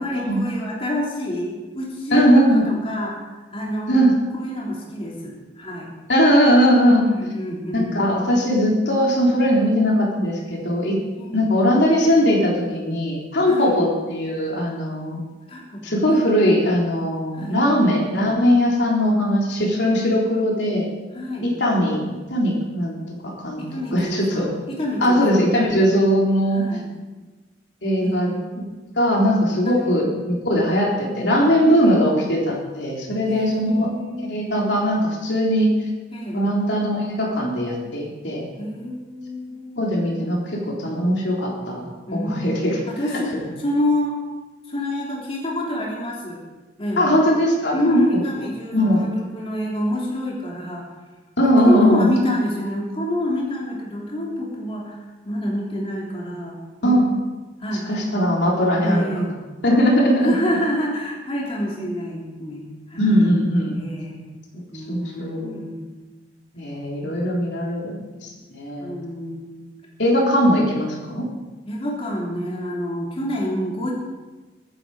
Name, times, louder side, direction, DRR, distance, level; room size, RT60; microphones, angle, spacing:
voice 1, 0.0-3.2 3.5-4.0 4.3-5.9 6.8-7.9 11.1-11.5 13.5-13.8 15.5-16.0 17.3-17.6 21.1-21.5 23.6-25.7 26.5-26.9 28.0-28.4 29.6-29.9 31.8-32.0 33.3-34.4 36.1-36.4 38.6-40.2 42.1-44.2 44.7-46.4 46.8-47.1 47.7-50.8 51.4-56.6 56.8-57.0 57.6-57.8 58.8-59.4 60.2-63.3 63.7-64.2 64.7-66.0 68.8-69.7 71.7-73.9, equal, 30° left, -3 dB, 3.2 m, -27 dB
voice 2, 2.1-2.6 3.9-4.1 6.1-7.1 7.7-11.0 11.3-15.2 15.8-20.9 21.4-22.0 22.3-23.0 23.2-23.6 23.9-24.5 25.0-26.7 27.8-28.3 29.0-33.9 34.2-35.7 36.3-38.5 39.8-42.8 43.1-43.2 47.0-48.0 48.7-49.1 51.4-52.1 56.8-57.1 57.9-59.3 59.6-60.3 63.0-63.8 64.9-65.6 66.5-68.0 68.5-69.0 70.0-71.3, equal, 70° left, -2 dB, 3.6 m, -19 dB
23.0 x 10.0 x 5.0 m, 1.2 s
head